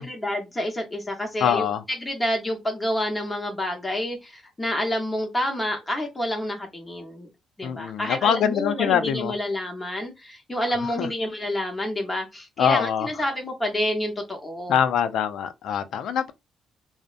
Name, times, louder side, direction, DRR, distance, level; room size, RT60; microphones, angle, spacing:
voice 1, 0.0-7.3 7.6-14.8, left 1 dB, 15° left, 0.9 m, -28 dB
voice 2, 1.4-1.8 7.6-9.3 11.0-11.1 12.6-13.1 14.7-16.3, left 8 dB, 75° left, 0.3 m, -23 dB
2.6 x 2.0 x 2.5 m
cardioid pair, 90°, 0 cm